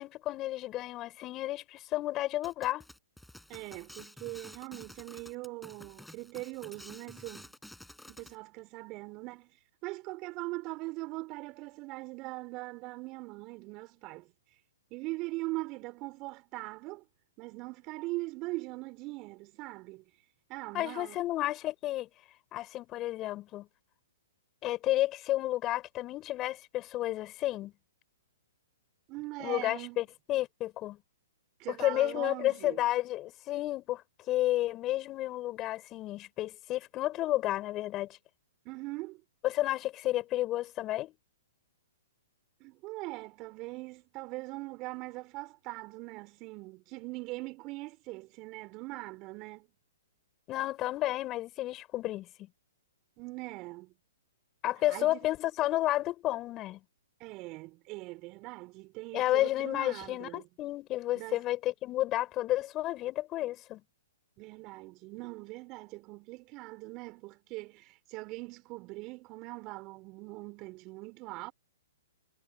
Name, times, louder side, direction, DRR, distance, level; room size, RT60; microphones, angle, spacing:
voice 1, 0.0-2.9 20.7-22.1 22.5-23.7 24.6-27.7 29.4-31.0 31.7-34.0 34.3-38.1 39.4-41.1 50.5-52.5 54.6-56.8 59.1-63.8, left 15 dB, 30° left, 5.6 m, -31 dB
sound 1, 2.4-8.4, left 1 dB, 5° left, 6.4 m, -51 dB
voice 2, 3.5-7.5 8.1-9.5 9.8-14.3 14.9-17.0 17.4-20.0 20.5-21.2 29.1-30.1 31.6-32.8 38.6-39.2 42.6-49.7 53.2-53.9 54.9-55.2 57.2-60.5 61.2-61.4 64.4-71.5, right 22 dB, 35° right, 4.6 m, -41 dB
hypercardioid pair, 125°, 0 cm